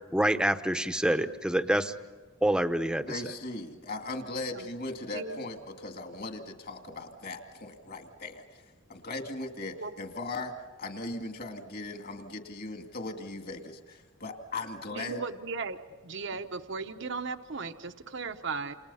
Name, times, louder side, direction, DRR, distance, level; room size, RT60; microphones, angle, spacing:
voice 1, 0.1-1.9 2.4-3.2, right 1 dB, 5° right, 10 dB, 0.9 m, -26 dB
voice 2, 3.1-8.6 8.9-10.5 10.8-15.2, left 2 dB, 45° left, 4 dB, 2.4 m, -38 dB
voice 3, 5.1-5.4 9.8-9.9 14.9-15.8 16.0-18.8, right 4 dB, 60° right, 8 dB, 0.9 m, -36 dB
28.5 x 28.0 x 5.6 m, 1.3 s
head